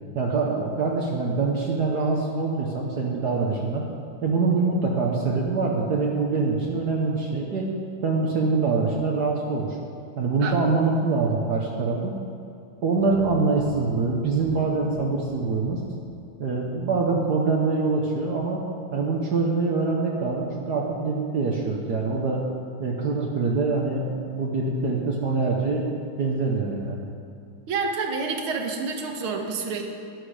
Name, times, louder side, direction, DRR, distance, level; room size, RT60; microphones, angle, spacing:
voice 1, 0.1-3.9 4.2-7.7 8.0-9.8 10.2-12.2 12.8-15.8 16.4-18.6 18.9-22.4 22.8-25.9 26.2-27.1, right 4 dB, 55° right, -1 dB, 1.5 m, -24 dB
sound 1, 12.9-16.8, left 2 dB, 85° left, 3.7 m, -43 dB
voice 2, 27.7-29.8, right 4 dB, 75° right, 3 dB, 2.1 m, -28 dB
12.5 x 11.5 x 5.0 m, 2.6 s
omnidirectional pair, 2.4 m